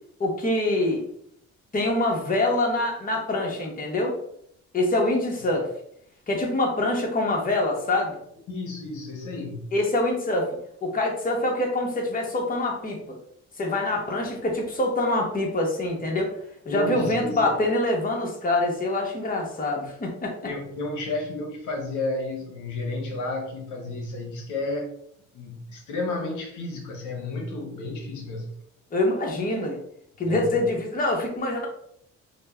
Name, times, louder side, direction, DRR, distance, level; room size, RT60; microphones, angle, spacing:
voice 1, 0.2-1.0 1.7-4.1 4.7-5.7 6.3-8.2 9.7-10.5 10.8-13.2 13.6-16.3 16.7-20.3 28.9-29.8 30.2-31.7, left 2 dB, 30° left, 0 dB, 0.9 m, -25 dB
voice 2, 8.5-9.7 16.7-17.6 20.4-24.9 25.3-28.5 30.2-30.6, left 2 dB, 80° left, 2 dB, 0.7 m, -32 dB
5.0 x 2.1 x 2.3 m, 0.69 s
cardioid pair, 90°, 30 cm